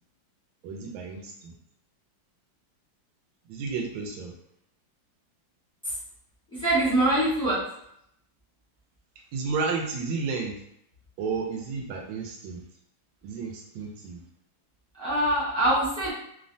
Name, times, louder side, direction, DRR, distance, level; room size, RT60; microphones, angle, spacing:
voice 1, 0.6-1.5 3.5-4.3 9.3-10.6 11.2-12.6 13.2-14.2, right 4 dB, 85° right, 1 dB, 1.4 m, -32 dB
voice 2, 6.6-7.6 15.0-16.1, right 1 dB, 5° left, -11 dB, 0.5 m, -23 dB
3.3 x 2.1 x 2.6 m, 0.75 s
omnidirectional pair, 2.1 m